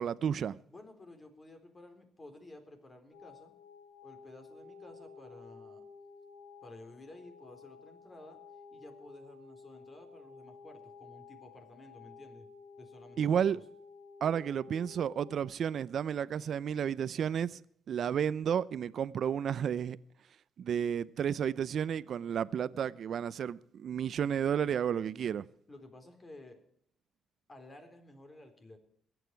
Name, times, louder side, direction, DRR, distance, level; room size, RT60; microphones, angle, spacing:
voice 1, 0.0-0.6 13.2-13.6 14.2-17.6 17.9-20.0 20.6-25.4, right 8 dB, 60° right, 0.6 m, -32 dB
voice 2, 0.7-3.5 4.0-5.8 6.6-8.4 8.7-12.5 12.8-13.6 25.7-26.6 27.5-28.8, left 2 dB, 30° left, 3.8 m, -53 dB
sound 1, 3.1-15.4, left 5 dB, 55° left, 5.7 m, -53 dB
22.5 x 9.1 x 4.6 m
cardioid pair, 90°, 0 cm